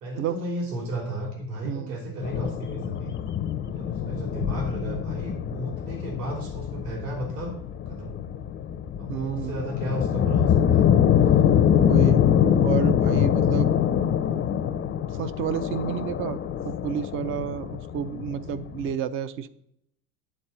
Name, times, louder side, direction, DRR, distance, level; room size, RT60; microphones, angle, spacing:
voice 1, 0.0-3.1 3.6-7.5 7.8-8.2 9.0-10.9 13.0-13.2, right 1 dB, 70° right, 1 dB, 3.3 m, -33 dB
voice 2, 1.6-2.0 9.1-9.7 11.8-12.2 12.6-13.7 14.4-14.6 15.1-19.5, right 9 dB, 30° right, 15 dB, 0.3 m, -31 dB
sound 1, 2.2-18.9, left 9 dB, 25° left, 0.5 m, -24 dB
9.1 x 4.1 x 6.8 m, 0.75 s
hypercardioid pair, 100°, 49 cm